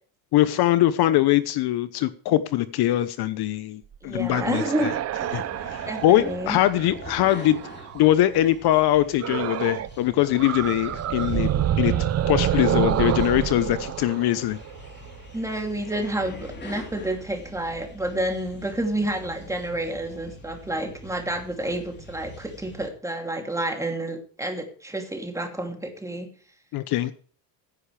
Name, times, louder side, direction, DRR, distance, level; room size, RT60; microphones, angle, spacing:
voice 1, 0.3-4.6 5.3-7.6 7.9-11.5 11.8-14.6 26.7-27.1, left 14 dB, 55° left, 0.9 m, -22 dB
sound 1, 3.9-8.1 9.2-10.0 10.2-15.1, right 11 dB, 35° right, 0.7 m, -27 dB
voice 2, 4.0-5.0 5.8-6.6 15.3-26.3, right 1 dB, 5° right, 2.8 m, -29 dB
sound 2, 5.2-22.9, left 1 dB, 25° left, 3.5 m, -44 dB
16.0 x 9.9 x 3.3 m
cardioid pair, 140°, 45 cm